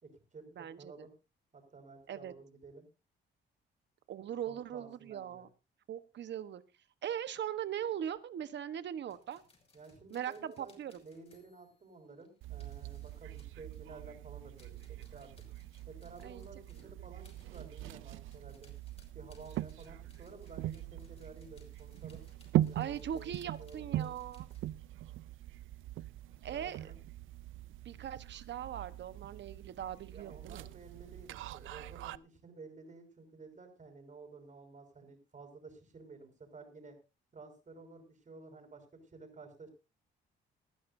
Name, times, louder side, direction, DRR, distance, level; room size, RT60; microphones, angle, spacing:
voice 1, 0.0-1.1 1.5-2.9 4.5-5.5 9.7-15.3 15.9-18.7 19.1-22.2 22.7-23.3 23.6-24.1 26.5-26.9 30.1-37.0 37.3-39.7, right 4 dB, 40° right, 6 dB, 5.8 m, -53 dB
voice 2, 0.6-1.1 2.1-2.3 4.1-5.5 5.9-6.6 7.0-9.4 10.1-11.0 16.2-16.5 22.7-24.5 26.4-26.9 27.8-30.6, right 9 dB, 65° right, 13 dB, 1.2 m, -40 dB
sound 1, 9.1-14.2 14.5-24.7, left 3 dB, 30° left, 6.7 m, -67 dB
sound 2, 12.4-32.2, right 14 dB, 80° right, 0.6 m, -41 dB
20.0 x 12.5 x 2.7 m, 0.30 s
cardioid pair, 90°, 20 cm